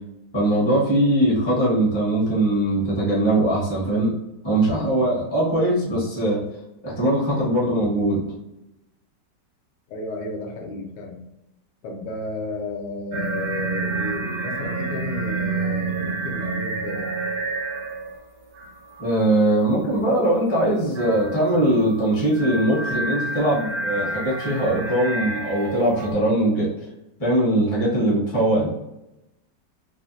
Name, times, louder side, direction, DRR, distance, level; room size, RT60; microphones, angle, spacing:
voice 1, 0.3-4.2 4.4-6.4 6.8-8.3 19.0-26.7 27.2-28.7, right 1 dB, 25° left, -5 dB, 0.5 m, -21 dB
voice 2, 9.9-11.2 11.8-17.1, left 3 dB, 75° left, 1 dB, 1.3 m, -32 dB
sound 1, 13.1-18.2 18.5-19.5 20.9-26.1, right 3 dB, 65° right, 1.1 m, -29 dB
3.4 x 2.1 x 2.5 m, 0.92 s
omnidirectional pair, 2.0 m